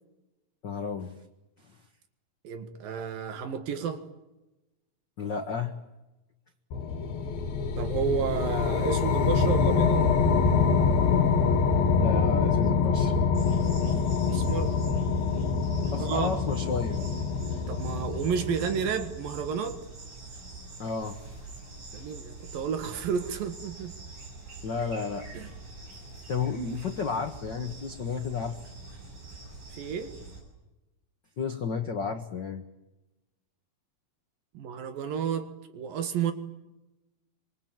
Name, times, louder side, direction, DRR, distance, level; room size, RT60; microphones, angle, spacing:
voice 1, 0.6-1.1 5.2-5.7 12.0-13.1 15.9-17.1 20.8-21.2 24.6-25.3 26.3-28.6 31.4-32.6, left 5 dB, 60° left, 6 dB, 1.1 m, -32 dB
voice 2, 2.4-4.0 7.8-10.1 14.3-14.8 16.0-16.4 17.7-19.8 21.9-23.9 25.3-25.5 29.7-30.1 34.5-36.3, right 7 dB, 70° right, 9 dB, 3.4 m, -31 dB
sound 1, 6.7-19.2, left 5 dB, 75° left, 3.9 m, -25 dB
sound 2, 13.3-30.4, right 3 dB, 50° right, 8.2 m, -44 dB
25.5 x 23.5 x 9.0 m, 1.0 s
omnidirectional pair, 4.3 m